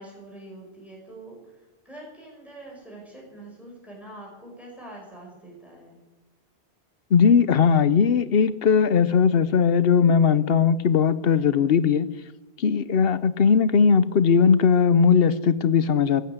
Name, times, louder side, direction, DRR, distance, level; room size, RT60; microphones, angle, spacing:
voice 1, 0.0-6.0, right 1 dB, ahead, -2 dB, 5.4 m, -44 dB
voice 2, 7.1-12.1 12.6-16.2, left 6 dB, 65° left, 16 dB, 1.0 m, -19 dB
15.0 x 12.0 x 8.0 m, 1.1 s
omnidirectional pair, 1.1 m